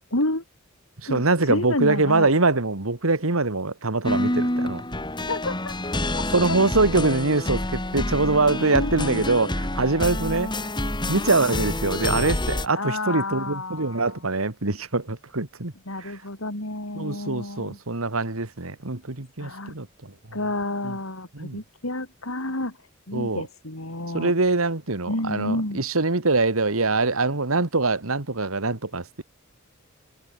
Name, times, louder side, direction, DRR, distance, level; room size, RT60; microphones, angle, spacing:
voice 1, 0.1-0.4 1.1-2.3 5.3-5.7 6.1-6.6 8.7-9.2 12.7-14.2 15.9-17.8 19.4-19.7 20.3-22.7 23.1-24.3 25.1-25.8, left 2 dB, 85° left, 5.5 m, -30 dB
voice 2, 1.0-4.8 6.3-10.5 11.0-15.7 16.0-16.2 16.9-20.1 20.8-21.0 21.3-21.6 23.1-23.4 24.1-29.2, right 3 dB, 85° right, 2.1 m, -24 dB
sound 1, 4.0-12.7, left 1 dB, 20° left, 4.6 m, -27 dB
head